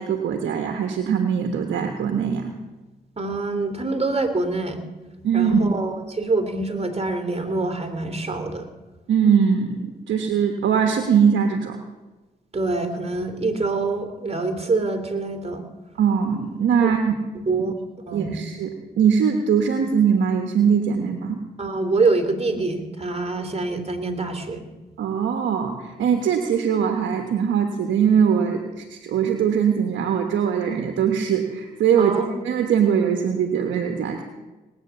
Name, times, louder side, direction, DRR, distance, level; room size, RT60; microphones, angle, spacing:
voice 1, 0.0-2.5 5.2-5.8 9.1-11.8 16.0-17.2 18.1-21.4 25.0-32.2 32.4-34.2, right 7 dB, 80° right, 5 dB, 1.3 m, -21 dB
voice 2, 3.2-4.8 5.3-8.7 12.5-15.7 16.8-16.9 17.5-17.7 18.1-18.4 21.6-24.6 32.0-32.3, right 3 dB, 35° right, 6 dB, 2.9 m, -25 dB
19.5 x 8.8 x 7.0 m, 1.2 s
supercardioid pair, 45°, 19 cm